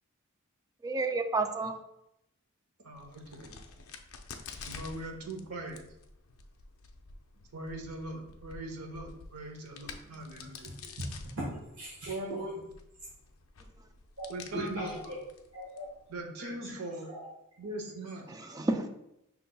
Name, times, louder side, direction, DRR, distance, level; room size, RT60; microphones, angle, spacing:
voice 1, 0.8-1.8 13.6-13.9 18.3-19.0, right 3 dB, 15° right, 0.3 m, -32 dB
voice 2, 2.8-3.5 4.6-5.8 7.5-10.7 12.1-12.4 14.3-14.9 16.1-17.1 17.6-18.3, right 1 dB, 90° right, 0.9 m, -40 dB
Crack, 2.9-16.2, left 4 dB, 65° left, 0.5 m, -50 dB
voice 3, 10.3-12.6 14.2-15.2 15.5-17.3 17.8-18.5, right 1 dB, 60° right, 1.3 m, -41 dB
5.6 x 4.0 x 2.2 m
head